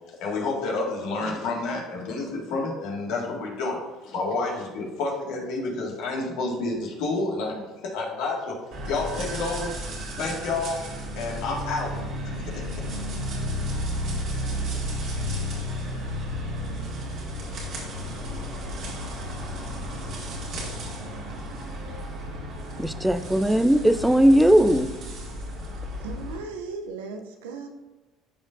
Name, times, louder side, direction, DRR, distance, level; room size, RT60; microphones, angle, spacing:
voice 1, 0.1-7.7 7.9-8.6 8.8-9.7 10.2-10.8 11.2-12.9, left 3 dB, 75° left, -1 dB, 1.8 m, -29 dB
sound 1, 8.7-26.4, equal, 60° right, 2.3 m, -33 dB
voice 2, 22.8-24.9, equal, 5° right, 11 dB, 0.5 m, -18 dB
voice 3, 25.7-27.7, right 4 dB, 90° right, 4 dB, 0.6 m, -37 dB
12.5 x 4.3 x 2.6 m, 1.2 s
supercardioid pair, 80°, 0 cm